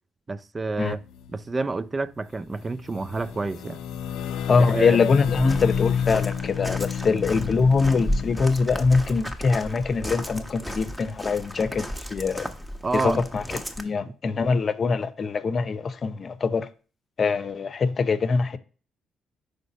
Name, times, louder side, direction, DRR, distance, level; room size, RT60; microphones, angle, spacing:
voice 1, 0.3-1.0 1.3-3.8 4.7-5.0 12.8-13.2, right 3 dB, 30° right, 0.5 m, -28 dB
sound 1, 0.8-1.5 2.1-2.2 2.5-8.4, left 8 dB, 75° left, 0.5 m, -30 dB
voice 2, 4.5-11.8 12.1-12.5 12.9-13.4 13.8-16.7 17.2-18.6, left 4 dB, 45° left, 0.7 m, -23 dB
Walk footsteps, 5.2-13.8, equal, 10° right, 1.2 m, -34 dB
5.1 x 3.9 x 5.0 m
hypercardioid pair, 50°, 0 cm